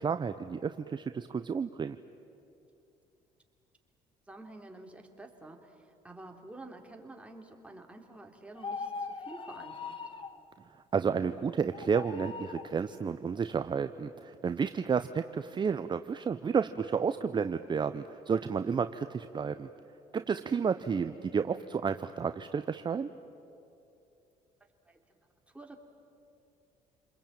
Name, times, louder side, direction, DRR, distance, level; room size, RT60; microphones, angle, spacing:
voice 1, 0.0-2.0 10.9-19.7 20.1-23.1, right 6 dB, 35° right, 10 dB, 0.8 m, -31 dB
voice 2, 4.3-10.0 24.8-25.0 25.5-25.8, right 2 dB, 10° right, 2 dB, 3.4 m, -49 dB
sound 1, 8.6-10.4 11.7-12.7, left 4 dB, 40° left, 1.6 m, -40 dB
28.0 x 21.5 x 8.9 m, 2.8 s
supercardioid pair, 80°, 14 cm